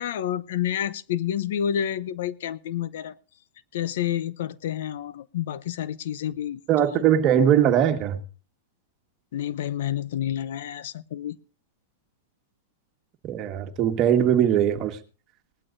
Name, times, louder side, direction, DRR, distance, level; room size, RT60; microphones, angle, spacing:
voice 1, 0.0-3.1 3.7-7.0 9.3-11.4, left 10 dB, 70° left, 0.7 m, -29 dB
voice 2, 6.7-8.2 13.3-15.0, right 9 dB, 35° right, 1.6 m, -20 dB
19.5 x 12.0 x 2.7 m
hypercardioid pair, 140°, 0 cm